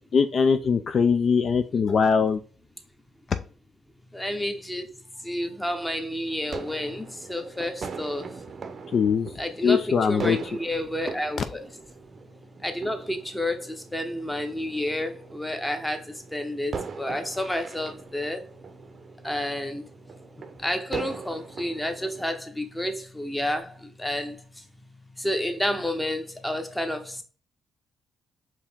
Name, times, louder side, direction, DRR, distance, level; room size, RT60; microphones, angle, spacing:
voice 1, 0.1-2.4 8.9-9.3 9.6-10.4, left 6 dB, 50° left, 0.4 m, -21 dB
voice 2, 4.1-8.4 9.4-11.6 12.6-18.5 19.2-19.9 20.4-24.6 25.2-27.2, left 1 dB, 10° left, 0.9 m, -30 dB
sound 1, 6.3-22.4, right 5 dB, 45° right, 0.6 m, -40 dB
4.8 x 2.9 x 3.5 m
cardioid pair, 90°, 0 cm